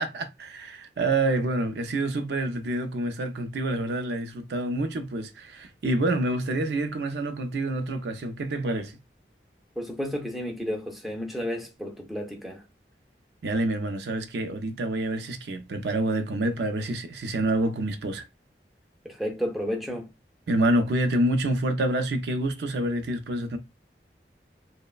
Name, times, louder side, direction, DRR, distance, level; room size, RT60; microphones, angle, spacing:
voice 1, 0.0-8.9 13.4-18.2 20.5-23.6, right 1 dB, 75° right, 0.4 m, -27 dB
voice 2, 9.8-12.6 19.0-20.1, equal, ahead, 0.4 m, -32 dB
3.0 x 2.1 x 2.3 m
head